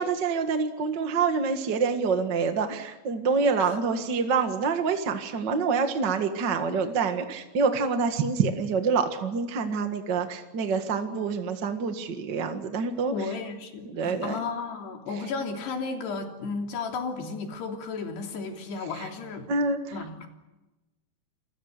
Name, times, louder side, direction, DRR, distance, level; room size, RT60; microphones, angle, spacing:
voice 1, 0.0-13.1 13.8-14.4 19.5-19.9, right 5 dB, 50° right, 6 dB, 1.3 m, -26 dB
voice 2, 13.1-19.5 19.9-20.3, left 4 dB, 85° left, 3 dB, 5.2 m, -34 dB
29.5 x 23.0 x 6.7 m, 1.0 s
omnidirectional pair, 4.6 m